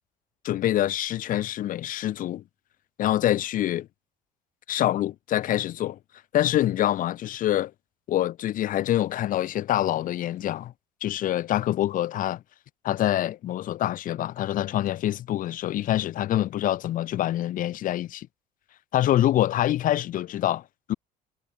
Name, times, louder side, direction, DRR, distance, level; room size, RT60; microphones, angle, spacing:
voice 1, 0.4-2.4 3.0-3.9 4.7-6.0 6.3-7.7 8.1-10.7 11.0-12.4 12.8-18.3 18.9-20.6 20.9-21.0, left 13 dB, 55° left, 5.1 m, -25 dB
cardioid pair, 155°, 17 cm